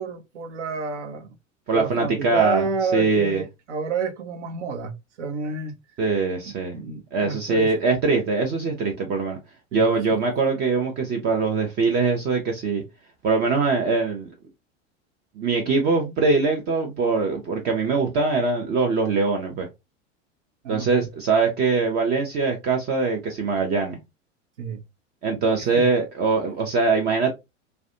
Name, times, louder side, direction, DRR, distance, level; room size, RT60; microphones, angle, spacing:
voice 1, 0.0-1.4 1.7-5.8 6.7-7.7 9.7-9.8 10.1-10.2 20.6-21.1 24.6-24.8 25.7-25.9, right 5 dB, 65° right, 0.7 m, -30 dB
voice 2, 1.7-2.6 2.9-3.4 6.0-6.7 7.1-9.4 9.7-12.8 13.2-14.3 15.4-19.7 20.7-24.0 25.2-27.3, right 4 dB, 25° right, 0.5 m, -22 dB
2.4 x 2.1 x 2.5 m
figure-of-eight pair, 80°, 38 cm